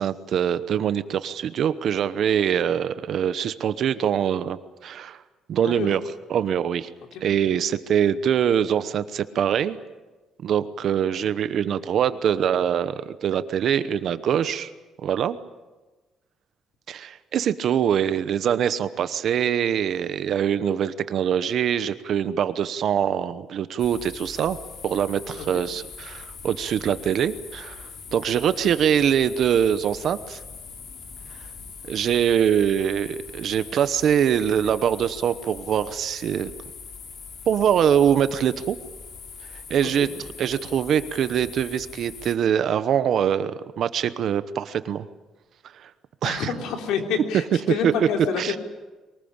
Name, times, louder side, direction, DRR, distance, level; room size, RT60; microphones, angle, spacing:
voice 1, 0.0-5.2 5.5-6.0 6.3-6.9 7.2-9.8 10.4-14.7 15.0-15.4 16.9-24.6 24.8-27.8 28.1-30.4 31.9-36.5 37.5-38.8 39.7-40.1 40.4-45.1 45.8-45.9 46.2-46.5 47.8-47.9 48.4-48.6, right 9 dB, 45° right, 13 dB, 0.9 m, -23 dB
sound 1, 23.8-42.4, left 5 dB, 45° left, 2.8 m, -41 dB
voice 2, 25.4-25.7 39.8-40.1 46.2-48.6, left 6 dB, 75° left, 3 dB, 3.4 m, -28 dB
23.5 x 20.0 x 8.8 m, 1.2 s
cardioid pair, 175°, 0 cm